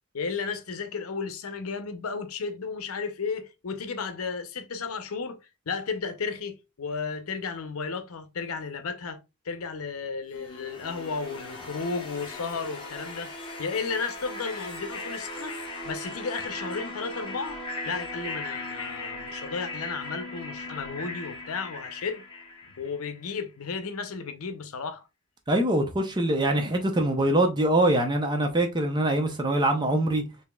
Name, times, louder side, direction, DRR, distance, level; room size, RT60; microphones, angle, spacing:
voice 1, 0.1-5.4 5.7-15.6 15.8-22.2 22.8-25.0, left 5 dB, 90° left, 0.6 m, -34 dB
sound 1, 10.3-23.2, left 2 dB, 25° left, 1.0 m, -38 dB
voice 2, 25.5-30.2, right 1 dB, 20° right, 0.6 m, -23 dB
4.9 x 2.8 x 2.2 m
head